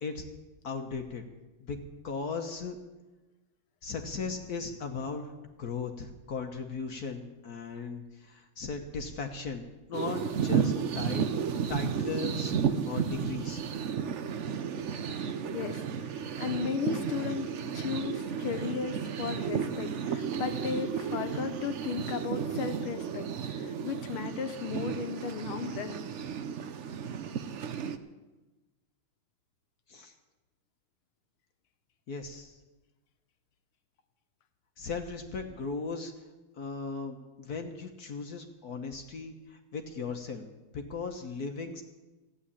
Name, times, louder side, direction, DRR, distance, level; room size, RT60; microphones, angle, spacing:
voice 1, 0.6-1.3 1.6-1.8 2.0-2.8 3.8-5.3 5.6-9.6 9.9-11.3 11.7-13.6 29.9-30.1 32.1-32.6 34.8-36.1 36.6-40.5 40.7-41.8, left 4 dB, 50° left, 5 dB, 1.4 m, -37 dB
sound 1, 9.9-28.0, right 7 dB, 70° right, 0.6 m, -33 dB
voice 2, 15.1-26.0, left 7 dB, 85° left, 8 dB, 2.0 m, -36 dB
14.5 x 8.5 x 10.0 m, 1.1 s
omnidirectional pair, 2.3 m